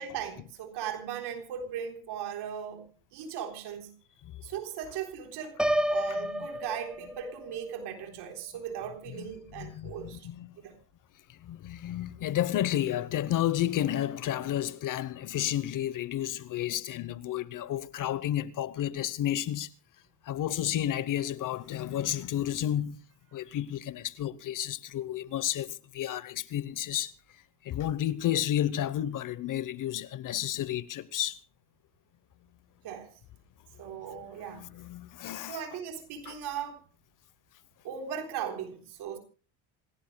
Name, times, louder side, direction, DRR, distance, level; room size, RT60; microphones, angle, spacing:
voice 1, 0.0-3.9 4.4-5.6 5.9-10.3 10.6-10.8 32.8-33.1 33.8-34.7 35.5-36.8 37.8-39.2, right 8 dB, 70° right, 3.8 m, -38 dB
Piano, 5.6-7.5, equal, ahead, 1.0 m, -29 dB
voice 2, 6.1-6.5 9.2-9.3 9.6-10.6 11.4-19.7 20.3-23.0 23.3-27.1 27.6-31.4 34.5-35.6 36.3-36.4, left 12 dB, 45° left, 0.9 m, -31 dB
27.0 x 17.0 x 2.2 m
cardioid pair, 110°, 42 cm